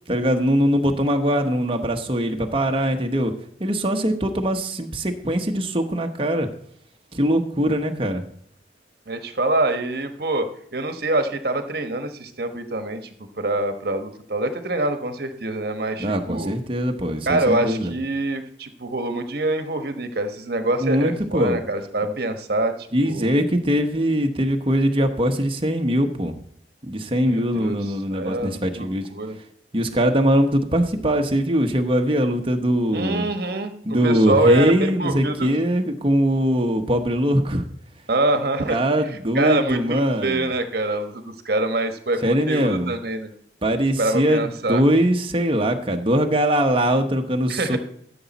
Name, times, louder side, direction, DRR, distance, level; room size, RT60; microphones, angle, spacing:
voice 1, 0.0-3.3 3.6-6.5 7.1-8.2 16.0-17.9 20.8-21.6 22.0-22.1 22.9-26.4 26.8-29.1 29.7-33.3 33.8-37.7 38.7-40.5 42.2-42.9 43.6-47.8, equal, 30° right, 4 dB, 1.0 m, -21 dB
voice 2, 9.1-13.0 13.4-16.5 17.3-22.7 23.0-23.3 27.2-29.4 32.9-33.7 34.0-35.5 38.1-38.8 39.3-43.3 44.0-44.8 47.5-47.8, right 2 dB, 55° right, 7 dB, 1.2 m, -25 dB
13.5 x 6.9 x 4.1 m, 0.66 s
head